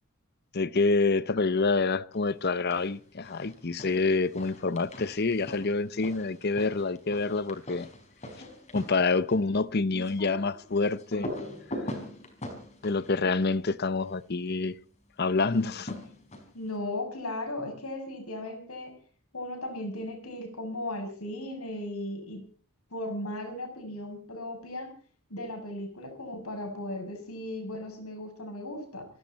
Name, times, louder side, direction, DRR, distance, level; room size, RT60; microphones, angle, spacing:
voice 1, 0.5-7.9 8.7-11.3 12.8-14.8 15.2-16.0, left 3 dB, 45° left, 0.8 m, -27 dB
sound 1, 2.4-2.9 3.2-14.2 15.5-16.7, left 1 dB, 30° left, 4.8 m, -42 dB
voice 2, 16.5-18.9 19.3-22.4 22.9-24.9 25.3-29.1, left 1 dB, 90° left, 6.9 m, -36 dB
27.5 x 12.0 x 4.2 m
head